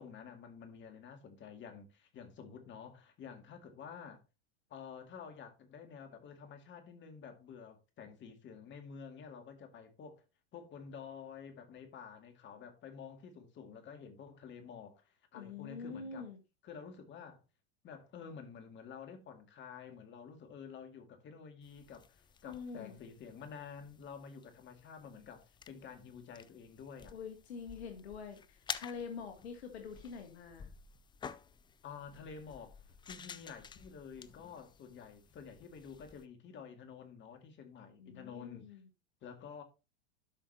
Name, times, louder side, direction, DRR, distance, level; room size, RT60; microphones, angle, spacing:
voice 1, 0.0-4.2 4.7-10.2 10.5-16.3 16.6-17.4 17.8-27.2 31.8-38.8 39.2-39.6, left 6 dB, 35° left, 2.2 m, -50 dB
voice 2, 15.3-16.4 22.4-23.0 27.1-30.7 38.0-38.9, left 5 dB, 75° left, 1.6 m, -45 dB
sound 1, 21.6-36.2, left 6 dB, 15° left, 0.4 m, -51 dB
12.0 x 5.6 x 2.8 m
hypercardioid pair, 95°, 32 cm